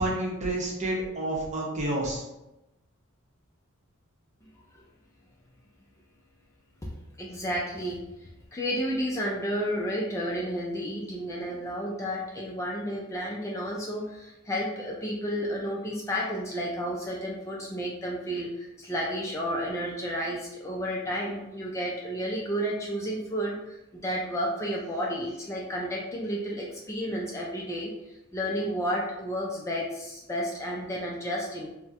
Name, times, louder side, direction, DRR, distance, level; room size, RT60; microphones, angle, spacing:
voice 1, 0.0-2.2, right 1 dB, 35° right, -3 dB, 0.8 m, -29 dB
voice 2, 7.2-31.8, equal, 15° left, -3 dB, 0.3 m, -32 dB
4.1 x 2.1 x 2.4 m, 0.93 s
head